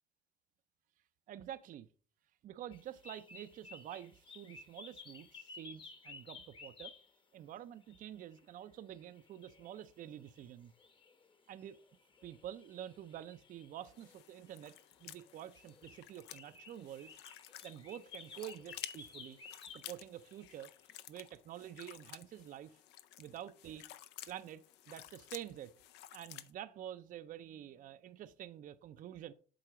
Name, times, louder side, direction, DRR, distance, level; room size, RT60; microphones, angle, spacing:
voice 1, 1.3-1.9 2.4-6.9 7.3-10.7 11.5-11.8 12.2-14.7 15.0-17.1 17.6-19.4 19.7-20.7 21.1-22.8 23.2-23.8 24.3-25.7 26.1-29.3, right 11 dB, 55° right, 0.5 m, -48 dB
sound 1, 2.7-7.1 7.8-21.1, left 4 dB, 30° left, 0.9 m, -56 dB
sound 2, 13.8-26.5, left 14 dB, 85° left, 0.5 m, -53 dB
7.6 x 4.0 x 4.9 m
cardioid pair, 110°, 17 cm